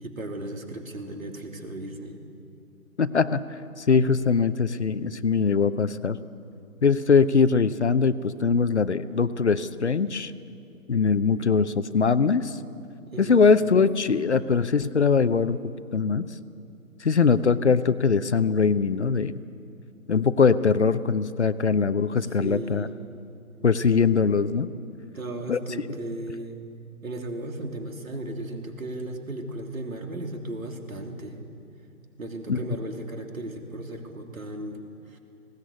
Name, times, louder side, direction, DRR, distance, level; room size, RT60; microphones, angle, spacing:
voice 1, 0.0-2.2 13.1-13.4 22.2-22.9 25.1-26.6 27.0-31.4 32.2-34.8 35.1-35.2, right 1 dB, 70° right, 3 dB, 3.1 m, -36 dB
voice 2, 3.0-3.4 3.8-6.2 6.8-10.3 10.9-12.6 13.2-16.3 17.0-19.4 20.1-22.9 23.6-24.7 25.5-25.6 32.5-32.6, left 5 dB, 50° left, 14 dB, 0.7 m, -22 dB
20.0 x 17.5 x 8.2 m, 2.5 s
figure-of-eight pair, 150°, 43 cm